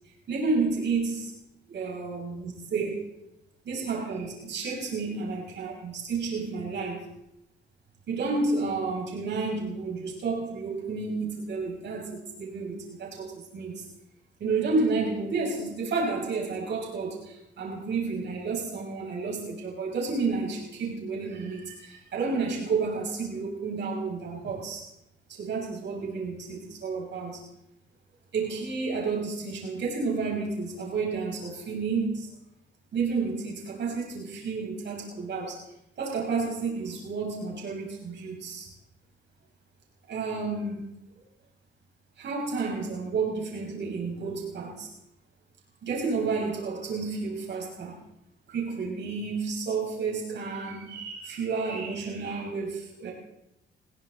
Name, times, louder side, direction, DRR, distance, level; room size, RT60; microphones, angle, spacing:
voice 1, 0.3-1.3 1.7-3.1 3.6-7.1 8.1-13.8 14.4-24.8 25.3-27.4 28.3-32.3 32.9-35.6 36.0-38.7 40.1-40.8 42.2-44.9 45.8-48.0 48.5-53.1, right 4 dB, 60° right, -2 dB, 6.2 m, -31 dB
21.0 x 17.0 x 4.0 m, 0.86 s
cardioid pair, 90°, 20 cm